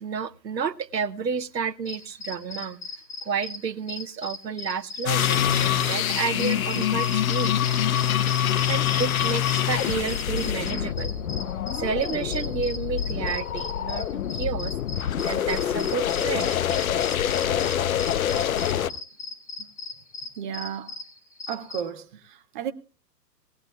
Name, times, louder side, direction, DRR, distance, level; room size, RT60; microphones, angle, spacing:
voice 1, 0.0-2.8 3.2-7.6 8.6-11.1 11.8-16.5, right 6 dB, 85° right, 0.8 m, -31 dB
sound 1, 1.9-21.8, left 3 dB, 90° left, 1.7 m, -39 dB
sound 2, 5.1-18.9, left 10 dB, 55° left, 0.7 m, -25 dB
voice 2, 20.4-21.0 21.5-22.7, right 9 dB, 30° right, 0.8 m, -34 dB
19.0 x 15.5 x 2.3 m
figure-of-eight pair, 120°, 49 cm